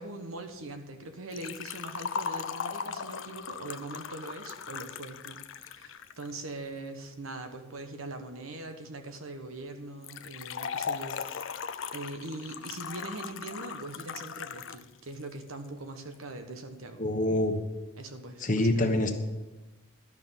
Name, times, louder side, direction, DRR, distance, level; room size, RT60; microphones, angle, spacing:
voice 1, 0.0-11.6 11.9-17.0 18.0-18.9, right 2 dB, 75° right, 6 dB, 1.2 m, -42 dB
Liquid, 1.3-6.3 10.0-14.9 15.1-15.2 16.1-16.2, left 6 dB, 60° left, 0.5 m, -38 dB
voice 2, 17.0-17.6 18.4-19.1, left 1 dB, 35° left, 5 dB, 1.1 m, -25 dB
12.0 x 6.1 x 7.3 m, 1.1 s
head